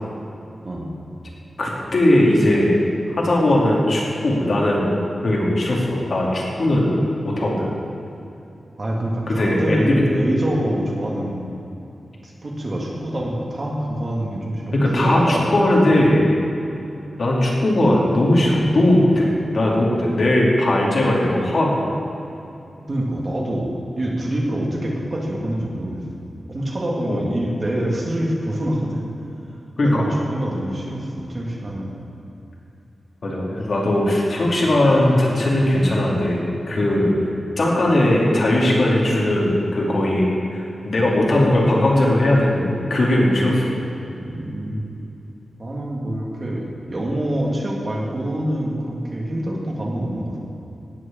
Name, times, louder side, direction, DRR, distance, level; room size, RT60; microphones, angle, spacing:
voice 1, 1.6-2.7 3.2-4.9 5.2-6.9 7.2-7.7 9.3-10.0 14.7-16.3 17.2-21.8 27.1-27.2 29.8-30.1 33.2-36.4 36.7-37.1 37.6-43.7, left 1 dB, 50° left, -3 dB, 2.5 m, -18 dB
voice 2, 8.8-11.4 12.2-15.7 22.9-26.0 26.5-29.0 29.8-32.0 36.9-37.1 44.2-44.8 45.6-50.4, right 1 dB, 35° right, -2 dB, 1.9 m, -25 dB
17.5 x 6.3 x 7.4 m, 2.8 s
wide cardioid pair, 170°, 0 cm